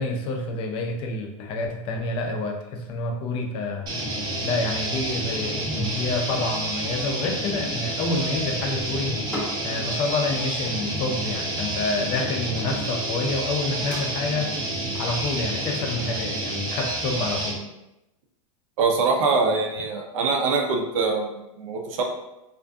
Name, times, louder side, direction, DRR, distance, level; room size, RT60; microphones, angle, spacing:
voice 1, 0.0-3.9 4.4-9.2 9.6-14.5 14.9-17.6, left 2 dB, 30° left, 2 dB, 0.4 m, -28 dB
sound 1, 3.9-17.6, right 1 dB, 25° right, 0.5 m, -29 dB
sound 2, 5.8-14.0, left 1 dB, 10° left, 0.7 m, -43 dB
voice 2, 18.8-22.0, right 4 dB, 70° right, 2 dB, 0.5 m, -23 dB
2.5 x 2.5 x 2.3 m, 0.93 s
supercardioid pair, 150°, 18 cm